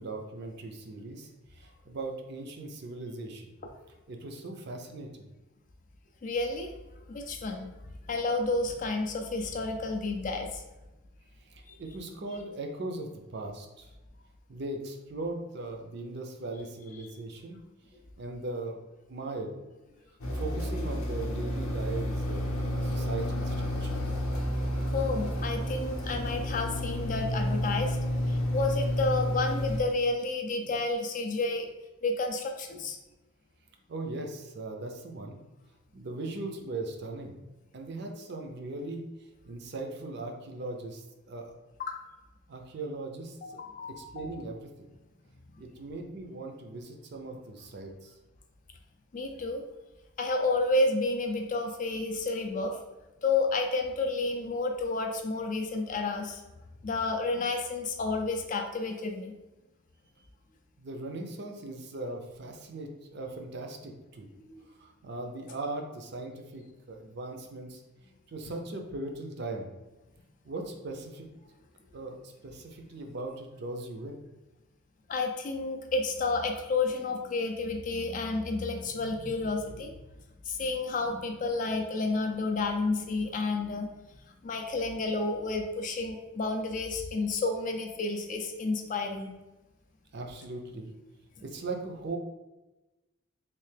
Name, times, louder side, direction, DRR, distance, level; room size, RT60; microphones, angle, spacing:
voice 1, 0.0-3.5 4.1-5.3 11.4-13.9 14.5-17.6 18.2-18.8 19.1-19.6 20.3-24.0 33.9-35.4 35.9-37.4 37.7-39.0 39.4-41.5 42.5-43.6 44.0-44.7 45.6-48.1 60.8-64.3 64.8-67.8 68.3-69.7 70.4-71.3 71.9-74.2 90.1-90.9 91.4-92.2, right 2 dB, 50° right, 3 dB, 0.5 m, -39 dB
voice 2, 6.2-6.7 7.1-7.7 8.1-10.6 24.9-28.0 28.3-31.7 32.0-33.0 41.8-42.0 43.4-44.3 49.1-49.6 50.2-52.8 53.2-56.4 56.8-59.3 64.4-64.7 75.1-79.9 80.5-83.9 84.4-89.3, left 3 dB, 35° left, 4 dB, 0.3 m, -30 dB
sound 1, 20.2-29.8, equal, 85° left, 0.6 m, -30 dB
3.2 x 2.7 x 3.3 m, 1.1 s
head